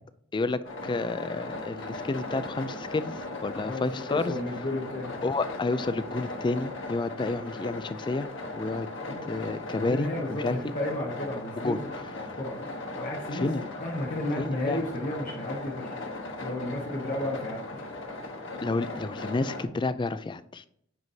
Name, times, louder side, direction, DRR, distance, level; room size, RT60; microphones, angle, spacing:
voice 1, 0.3-4.3 5.2-8.3 8.5-8.9 9.3-10.6 11.6-11.8 13.3-13.7 14.4-14.8 18.6-20.7, left 3 dB, 25° left, 14 dB, 0.4 m, -30 dB
sound 1, 0.6-19.6, left 2 dB, 70° left, 1.3 m, -38 dB
voice 2, 3.6-5.1 9.1-11.9 12.4-12.6 12.9-13.5 13.8-16.0 16.4-17.9, left 1 dB, 45° left, -3 dB, 1.2 m, -33 dB
9.3 x 4.7 x 2.8 m, 0.69 s
head